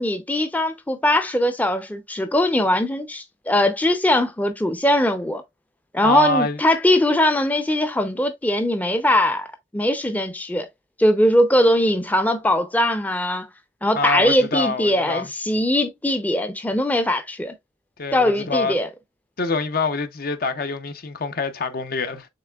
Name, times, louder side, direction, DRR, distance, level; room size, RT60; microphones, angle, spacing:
voice 1, 0.0-5.4 5.9-9.5 9.7-10.7 11.0-13.5 13.8-17.5 18.1-18.9, left 1 dB, 10° left, 0.5 m, -20 dB
voice 2, 6.0-6.6 13.9-15.3 18.0-18.8 19.4-22.3, left 3 dB, 55° left, 0.6 m, -25 dB
6.7 x 3.2 x 2.3 m
head